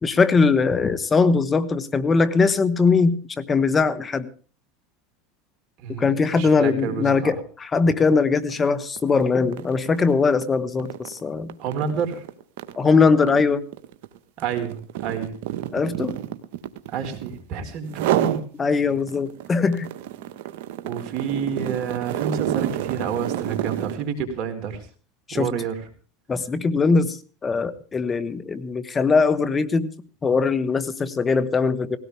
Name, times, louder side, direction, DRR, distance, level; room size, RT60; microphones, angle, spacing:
voice 1, 0.0-4.3 6.0-11.5 12.8-13.6 15.7-16.2 18.6-19.9 25.3-25.5 26.3-29.9 30.2-32.0, left 4 dB, 20° left, 15 dB, 1.4 m, -21 dB
voice 2, 5.8-7.4 11.6-12.2 14.4-15.3 16.9-18.4 20.8-24.9 25.3-25.8, right 7 dB, 50° right, 5 dB, 4.4 m, -29 dB
sound 1, 8.4-8.6 9.0-17.4 17.9-18.4 18.9-24.0, right 12 dB, 70° right, 1.4 m, -29 dB
19.0 x 17.0 x 3.5 m, 0.38 s
supercardioid pair, 110°, 0 cm